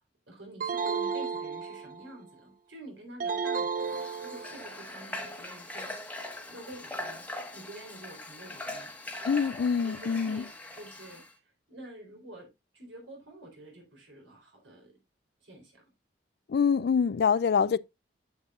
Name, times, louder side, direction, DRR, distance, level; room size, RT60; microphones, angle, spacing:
voice 1, 0.3-6.1 6.5-7.2 7.5-8.9 9.8-12.5 12.7-15.0 15.4-15.8, right 1 dB, 90° right, 3.7 m, -48 dB
sound 1, 0.6-2.2 3.2-4.8, right 5 dB, 45° right, 0.6 m, -33 dB
Water / Water tap faucet, 3.8-11.3, left 1 dB, 10° left, 1.1 m, -41 dB
voice 2, 9.2-10.4 16.5-17.8, left 6 dB, 60° left, 0.4 m, -25 dB
9.6 x 7.5 x 2.4 m
head